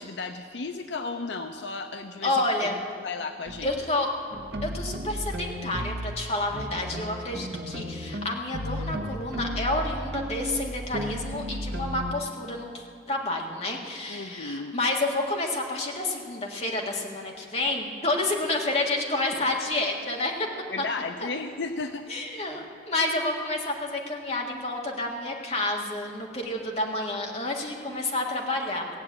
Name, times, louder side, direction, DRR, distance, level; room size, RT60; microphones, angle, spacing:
voice 1, 0.0-2.7 3.0-3.7 14.1-14.8 20.7-22.0 28.2-28.3, left 3 dB, 75° left, 6 dB, 0.6 m, -34 dB
voice 2, 2.2-2.8 3.6-4.1 4.6-20.3 20.8-20.9 22.1-28.9, left 2 dB, 35° left, 0 dB, 1.7 m, -29 dB
sound 1, 3.4-3.8 4.3-6.2 6.5-12.1, equal, 65° right, 1.1 m, -34 dB
17.0 x 7.7 x 8.6 m, 2.4 s
head